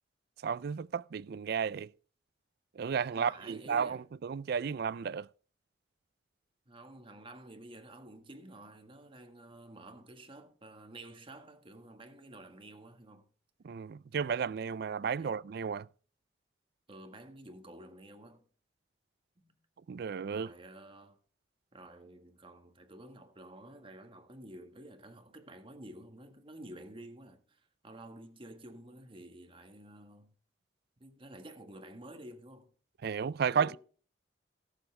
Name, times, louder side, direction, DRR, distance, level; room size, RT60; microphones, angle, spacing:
voice 1, 0.4-1.9 2.8-5.3 13.6-15.9 19.9-20.5 33.0-33.8, right 6 dB, 60° right, 0.4 m, -33 dB
voice 2, 3.1-4.0 6.7-13.3 15.2-15.4 16.9-18.4 19.4-19.6 20.3-21.2 21.7-30.3 31.0-32.7 33.5-33.8, right 1 dB, 30° right, 1.6 m, -51 dB
18.0 x 7.3 x 3.3 m
head